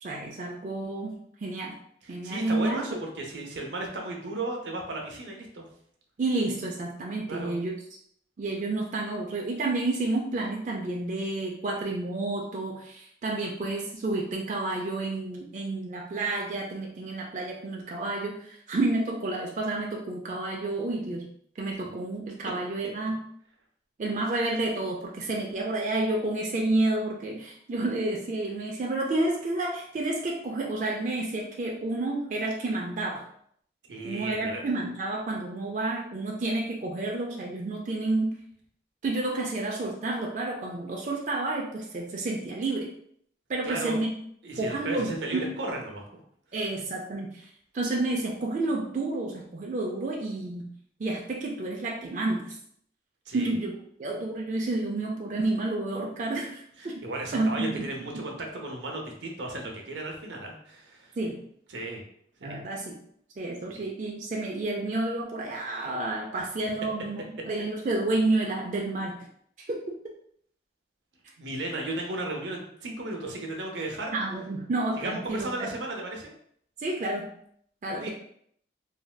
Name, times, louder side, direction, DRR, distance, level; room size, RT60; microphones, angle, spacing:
voice 1, 0.0-1.8 2.1-2.8 6.2-7.7 8.4-21.3 21.6-23.2 24.0-33.2 34.0-38.3 39.0-42.9 43.5-44.1 44.6-45.5 46.5-47.5 47.7-50.7 51.0-52.5 53.3-57.0 57.3-57.8 58.1-58.3 61.2-61.4 62.4-63.0 63.4-69.2 69.7-69.8 74.1-75.7 76.8-77.3 77.8-78.1, right 2 dB, 40° right, -1 dB, 0.3 m, -30 dB
voice 2, 2.0-5.6 7.3-7.5 33.9-34.6 43.6-44.0 44.4-46.2 53.3-53.5 56.8-58.3 58.6-61.1 61.7-62.0 62.4-62.6 63.7-63.8 71.4-74.1 75.0-76.3 77.9-78.1, right 2 dB, 85° right, 1 dB, 0.7 m, -35 dB
3.2 x 2.6 x 2.2 m, 0.66 s
head